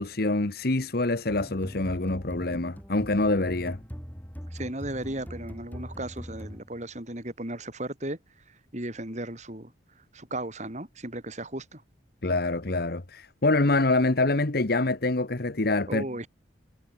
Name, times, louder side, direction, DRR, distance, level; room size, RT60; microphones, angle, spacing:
voice 1, 0.0-3.8 12.2-16.1, left 2 dB, 55° left, 1.3 m, -25 dB
sound 1, 1.3-7.0, equal, 10° left, 3.7 m, -41 dB
voice 2, 4.5-8.2 8.5-11.8 15.9-16.3, right 1 dB, 40° right, 5.2 m, -36 dB
head